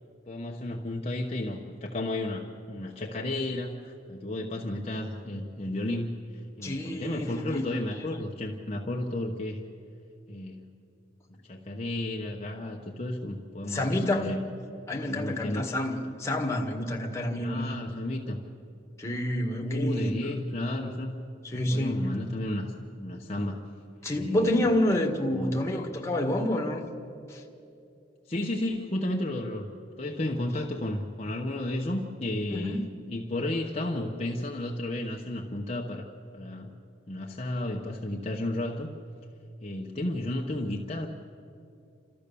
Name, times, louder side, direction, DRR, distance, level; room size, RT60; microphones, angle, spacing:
voice 1, 0.3-9.6 10.3-10.7 11.4-14.4 15.0-15.8 17.4-18.4 19.6-21.1 21.7-23.6 24.2-24.7 25.3-25.6 28.3-29.7 30.0-36.7 37.1-38.9 39.6-41.1, left 1 dB, 35° left, 1.0 m, -33 dB
voice 2, 6.6-7.8 13.7-14.3 14.9-17.8 19.0-20.2 21.4-22.2 24.0-26.8 27.3-27.4 32.5-32.9, left 1 dB, 15° left, 1.8 m, -28 dB
29.0 x 13.5 x 6.9 m
head